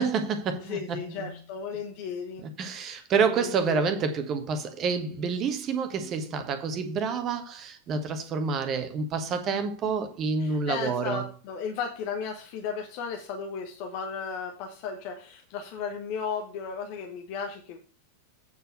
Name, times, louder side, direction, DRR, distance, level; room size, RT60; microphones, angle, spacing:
voice 1, 0.0-1.3 2.4-11.2, right 5 dB, 30° right, 1.3 m, -28 dB
voice 2, 0.6-3.8 10.4-17.8, left 6 dB, 45° left, 1.2 m, -35 dB
8.4 x 4.6 x 6.6 m
figure-of-eight pair, 90°, 0 cm